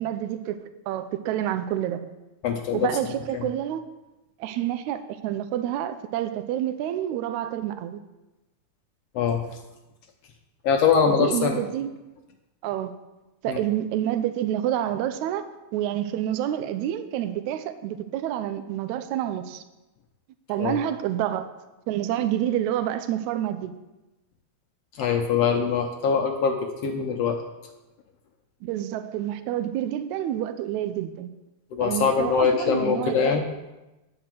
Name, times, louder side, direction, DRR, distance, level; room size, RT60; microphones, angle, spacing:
voice 1, 0.0-2.0 2.7-3.8 4.4-8.0 11.1-11.9 12.6-13.0 13.4-15.4 15.7-19.6 20.5-21.5 21.9-23.7 28.6-31.3 31.8-33.4, right 11 dB, 85° right, 10 dB, 2.0 m, -28 dB
voice 2, 2.4-2.9 3.3-3.5 9.2-9.4 10.6-11.6 13.5-13.6 20.6-20.8 25.0-27.4 31.7-33.4, left 6 dB, 70° left, 3 dB, 1.7 m, -23 dB
10.0 x 5.9 x 7.5 m, 1.0 s
omnidirectional pair, 3.3 m